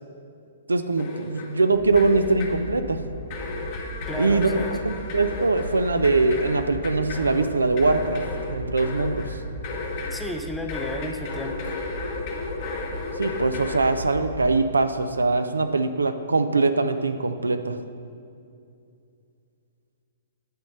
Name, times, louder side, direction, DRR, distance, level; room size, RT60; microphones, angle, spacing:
voice 1, 0.7-3.0 4.2-9.4 13.2-17.8, right 3 dB, 85° right, 9 dB, 0.5 m, -22 dB
broken toy, 1.0-1.7 2.0-2.7 3.3-10.4 10.7-13.9, left 3 dB, 45° left, 1.2 m, -34 dB
sound 1, 1.7-14.5, equal, 60° left, 1.3 m, -37 dB
voice 2, 4.1-4.8 10.1-11.7, left 1 dB, 5° left, 5 dB, 0.6 m, -33 dB
9.2 x 4.2 x 6.6 m, 2.4 s
figure-of-eight pair, 120°, 0 cm